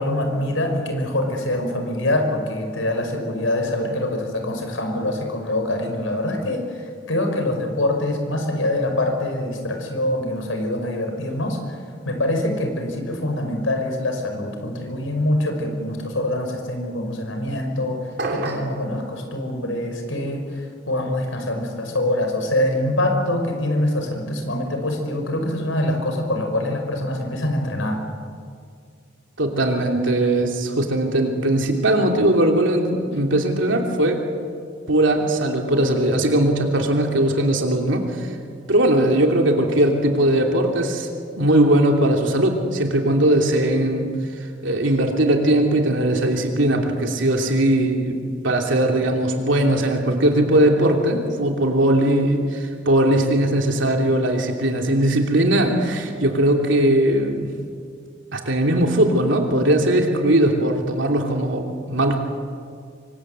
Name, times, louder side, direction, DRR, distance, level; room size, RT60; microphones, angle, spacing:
voice 1, 0.0-11.8 12.1-18.0 18.3-28.0, left 1 dB, 85° left, 4 dB, 5.4 m, -24 dB
sound 1, 18.2-18.8, right 2 dB, 55° right, 3.2 m, -27 dB
voice 2, 29.4-34.2 34.9-38.4 38.7-41.1 41.4-48.2 48.4-57.5 58.3-62.2, right 1 dB, 75° right, 2 dB, 3.0 m, -19 dB
27.0 x 24.0 x 8.1 m, 2.2 s
head